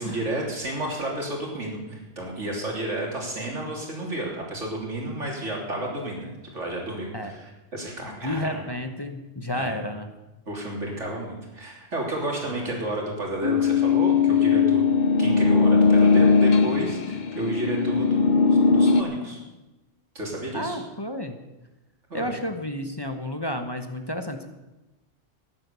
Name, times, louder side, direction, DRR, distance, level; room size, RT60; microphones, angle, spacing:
voice 1, 0.0-8.6 9.5-9.8 10.5-14.8 15.2-19.4 20.2-20.8 22.1-22.4, right 1 dB, 85° right, -1 dB, 3.7 m, -31 dB
voice 2, 8.2-10.1 12.6-12.7 20.5-21.4 22.1-24.5, left 1 dB, 20° left, 6 dB, 1.0 m, -31 dB
sound 1, 13.4-19.0, left 5 dB, 45° left, 0.8 m, -19 dB
14.5 x 10.5 x 6.9 m, 1.0 s
omnidirectional pair, 1.2 m